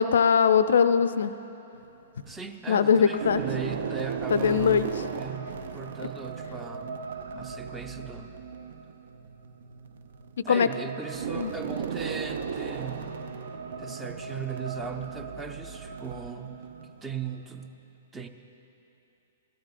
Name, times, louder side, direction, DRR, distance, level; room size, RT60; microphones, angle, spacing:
voice 1, 0.0-1.3 2.7-3.4 4.3-4.9 10.4-10.7 11.3-11.5, left 6 dB, 65° left, 13 dB, 0.4 m, -21 dB
sound 1, 1.7-2.6 3.1-17.7, right 6 dB, 60° right, 0.6 m, -37 dB
voice 2, 2.3-7.0 7.3-8.3 10.4-13.1 13.8-16.6 16.8-17.7 18.1-18.3, right 6 dB, 15° right, 6 dB, 0.7 m, -38 dB
16.5 x 13.0 x 2.4 m, 2.9 s
figure-of-eight pair, 110°, 0 cm